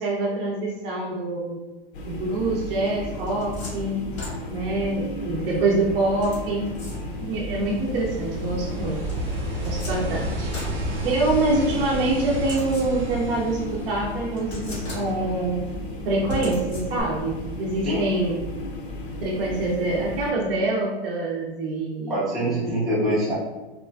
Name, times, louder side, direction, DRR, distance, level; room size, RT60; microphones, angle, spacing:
voice 1, 0.0-1.6 2.0-4.0 4.5-6.7 7.2-9.0 9.6-10.5 11.0-15.6 16.0-18.4 19.2-22.1 22.5-22.6 22.8-22.9, right 2 dB, 60° right, -4 dB, 0.6 m, -25 dB
sound 1, 1.9-20.3, left 1 dB, 55° left, 0.6 m, -35 dB
sound 2, 2.9-4.8 6.2-7.4 9.1-11.6 12.3-13.3 13.8-13.9 14.4-15.4 16.3-17.3, left 1 dB, 90° left, 1.2 m, -38 dB
sound 3, 6.5-14.8 17.0-17.1, right 1 dB, 20° right, 0.8 m, -32 dB
voice 2, 22.1-23.3, right 1 dB, ahead, -9 dB, 0.4 m, -24 dB
2.9 x 2.4 x 2.2 m, 1.1 s
hypercardioid pair, 125°, 31 cm